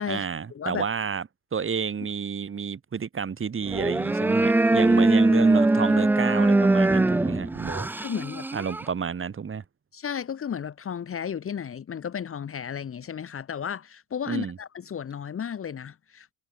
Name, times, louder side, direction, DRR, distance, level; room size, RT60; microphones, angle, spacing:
voice 1, 0.1-7.9 8.5-9.6 14.3-14.6, right 6 dB, 30° right, 6.7 m, -30 dB
sound 1, 3.7-8.9, right 2 dB, 5° right, 0.6 m, -21 dB
voice 2, 8.0-8.5 9.9-16.3, left 8 dB, 30° left, 2.7 m, -33 dB
figure-of-eight pair, 60°, 44 cm